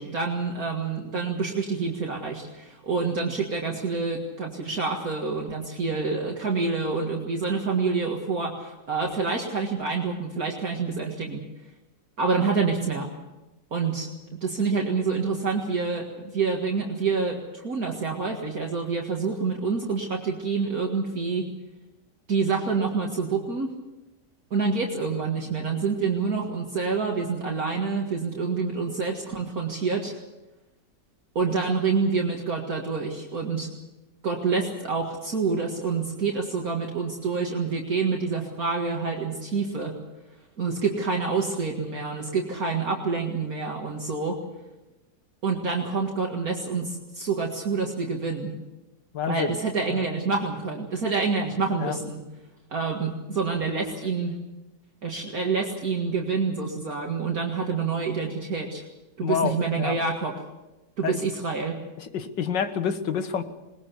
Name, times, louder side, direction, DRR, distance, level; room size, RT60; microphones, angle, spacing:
voice 1, 0.0-11.4 12.2-13.1 13.7-21.5 22.3-23.7 24.5-30.2 31.4-33.7 34.2-40.0 40.6-44.4 45.4-48.6 49.3-52.2 52.7-54.4 55.0-58.8 59.2-60.3 61.0-61.8, right 4 dB, 55° right, 0 dB, 2.3 m, -27 dB
voice 2, 49.1-49.6 49.9-50.0 51.8-52.0 59.2-60.0 61.0-61.2 62.0-63.4, left 7 dB, 80° left, 10 dB, 2.0 m, -28 dB
21.0 x 20.5 x 7.1 m, 1.0 s
omnidirectional pair, 1.9 m